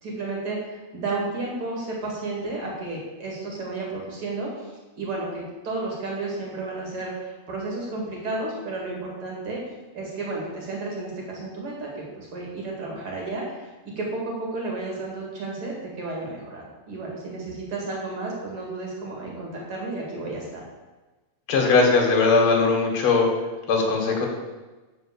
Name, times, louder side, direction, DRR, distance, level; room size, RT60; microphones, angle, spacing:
voice 1, 0.0-9.6 9.9-13.7 14.0-20.6, right 2 dB, 50° right, -2 dB, 3.0 m, -32 dB
voice 2, 21.5-23.3 23.7-24.3, left 4 dB, 50° left, 0 dB, 2.5 m, -19 dB
7.8 x 5.5 x 7.0 m, 1.2 s
omnidirectional pair, 3.3 m